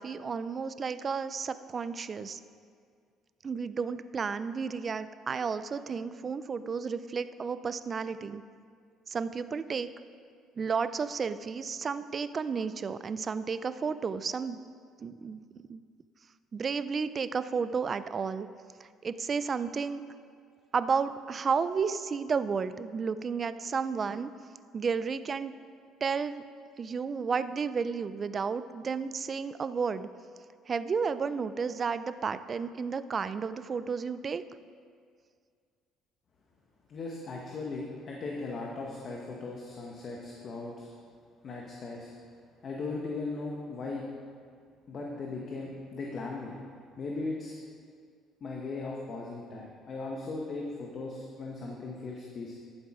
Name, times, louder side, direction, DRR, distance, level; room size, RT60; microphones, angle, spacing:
voice 1, 0.0-2.4 3.4-8.4 9.1-9.9 10.6-14.6 15.0-15.4 15.7-15.8 16.5-18.5 19.0-20.0 20.7-24.3 24.7-25.5 26.0-26.4 26.8-30.1 30.7-34.4, right 5 dB, 30° right, 13 dB, 0.3 m, -32 dB
voice 2, 36.9-40.9 41.4-42.1 42.6-44.0 44.9-46.6 47.0-47.5 48.4-52.5, left 3 dB, 40° left, -1 dB, 1.1 m, -38 dB
11.5 x 7.2 x 4.9 m, 2.1 s
cardioid pair, 135°, 0 cm